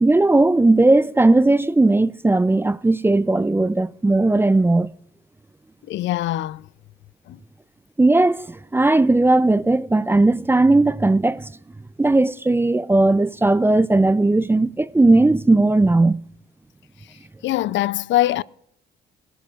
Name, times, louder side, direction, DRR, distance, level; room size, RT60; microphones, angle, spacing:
voice 1, 0.0-4.9 8.0-11.5 12.0-16.2, right 2 dB, 10° right, 0.4 m, -17 dB
voice 2, 5.9-6.7 7.3-7.4 17.4-18.4, left 14 dB, 70° left, 0.4 m, -22 dB
18.5 x 16.5 x 2.4 m
cardioid pair, 90°, 20 cm